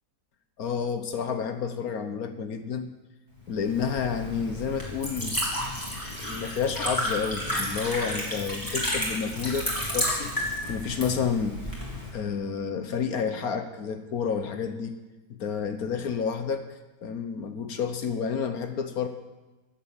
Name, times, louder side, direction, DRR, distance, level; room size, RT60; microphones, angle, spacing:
voice 1, 0.6-2.9 3.5-5.4 6.2-11.6 12.1-14.9 15.4-16.7 17.0-19.1, left 6 dB, 70° left, 8 dB, 1.4 m, -30 dB
Liquid, 3.5-12.1, equal, 10° left, 3.5 m, -31 dB
15.0 x 8.6 x 7.5 m, 1.1 s
omnidirectional pair, 1.7 m